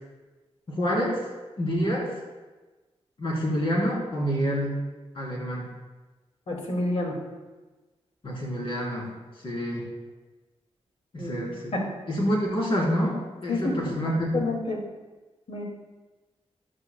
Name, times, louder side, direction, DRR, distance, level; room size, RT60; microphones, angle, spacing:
voice 1, 0.8-1.2 1.6-2.1 3.2-4.8 5.1-5.7 8.2-9.1 9.4-9.8 11.1-11.7 12.1-13.2 13.4-14.4, equal, 55° left, -4 dB, 3.5 m, -27 dB
voice 2, 6.5-7.2 11.2-11.4 11.7-11.8 13.5-13.7 14.3-14.8 15.5-15.6, left 2 dB, 70° left, -1 dB, 2.3 m, -28 dB
14.0 x 10.5 x 2.3 m, 1.2 s
wide cardioid pair, 155°, 11 cm